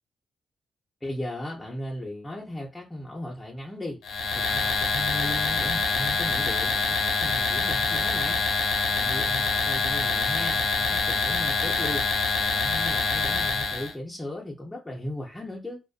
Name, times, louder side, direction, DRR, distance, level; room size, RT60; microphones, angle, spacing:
voice 1, 1.0-4.0 4.3-8.4 8.9-12.1 12.4-15.8, left 1 dB, 15° left, 0.7 m, -36 dB
sound 1, 4.0-13.9, left 4 dB, 75° left, 0.6 m, -25 dB
2.5 x 2.3 x 2.4 m
supercardioid pair, 50°, 0 cm